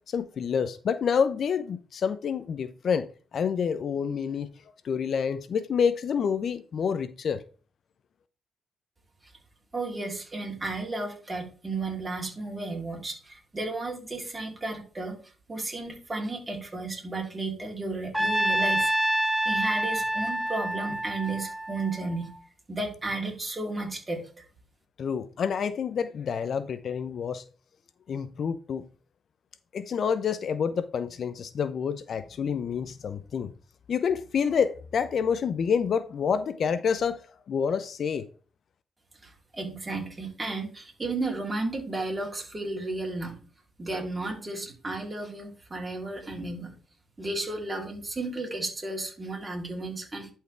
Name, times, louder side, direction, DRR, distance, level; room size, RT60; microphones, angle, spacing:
voice 1, 0.1-3.1 3.3-4.5 4.8-7.4 25.0-27.4 28.1-28.8 29.7-33.5 33.9-37.2 37.5-38.3, left 6 dB, 55° left, 0.6 m, -28 dB
voice 2, 9.7-15.2 15.5-18.9 19.4-22.3 22.7-24.4 39.2-43.4 43.8-46.7 47.2-50.3, right 2 dB, 20° right, 3.3 m, -33 dB
Trumpet, 18.1-22.4, right 1 dB, 5° right, 1.3 m, -27 dB
11.0 x 4.7 x 3.4 m
cardioid pair, 90°, 0 cm